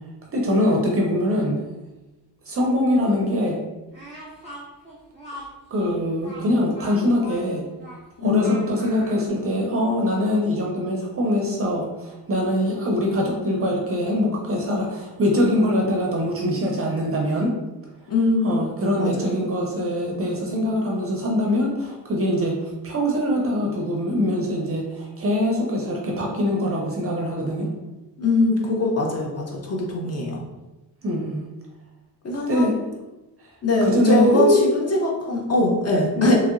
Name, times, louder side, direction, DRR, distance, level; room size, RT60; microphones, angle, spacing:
voice 1, 0.3-1.6 2.5-3.6 5.7-7.6 8.2-17.5 18.4-27.7 31.0-31.4 32.5-32.7 33.8-34.6 36.2-36.4, left 1 dB, 35° right, -1 dB, 0.4 m, -23 dB
Speech, 3.9-9.3, equal, 15° left, 1.1 m, -41 dB
voice 2, 8.2-8.6 18.1-18.6 19.0-19.4 28.2-30.4 32.2-32.7 33.6-36.4, left 2 dB, 40° left, -1 dB, 0.5 m, -22 dB
2.9 x 2.7 x 2.4 m, 1.0 s
wide cardioid pair, 165°, 42 cm